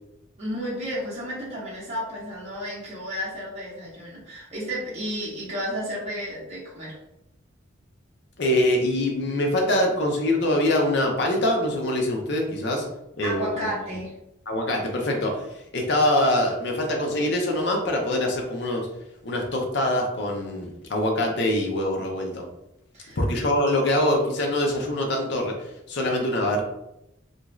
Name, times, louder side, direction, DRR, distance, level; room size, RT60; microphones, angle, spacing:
voice 1, 0.4-7.0 13.2-14.1 22.9-23.2, equal, 30° right, -7 dB, 0.9 m, -32 dB
voice 2, 8.4-12.9 13.2-13.7 14.5-15.5 15.7-18.9 19.2-22.4 23.2-26.6, left 1 dB, 55° left, 1 dB, 0.6 m, -24 dB
2.5 x 2.3 x 3.0 m, 0.85 s
head